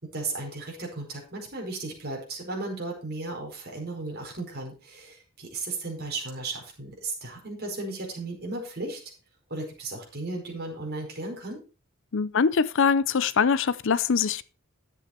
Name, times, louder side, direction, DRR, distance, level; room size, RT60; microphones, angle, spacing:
voice 1, 0.0-9.0 9.5-11.6, right 3 dB, 50° right, 4.8 m, -35 dB
voice 2, 12.1-14.4, left 6 dB, 65° left, 0.6 m, -23 dB
11.5 x 7.9 x 4.4 m
head